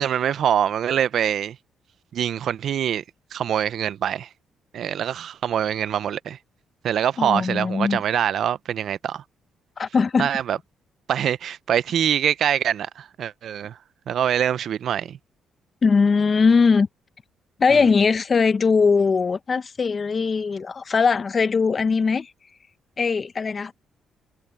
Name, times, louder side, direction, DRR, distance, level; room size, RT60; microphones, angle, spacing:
voice 1, 0.0-1.6 2.1-3.0 3.3-4.3 4.7-6.4 6.8-9.2 10.2-10.6 11.1-13.8 14.1-15.2 17.7-17.8, right 9 dB, 65° right, 0.6 m, -24 dB
voice 2, 7.2-8.0 9.8-10.3 15.8-16.9 17.6-22.3 23.0-23.7, left 5 dB, 40° left, 1.1 m, -20 dB
cardioid pair, 90°, 0 cm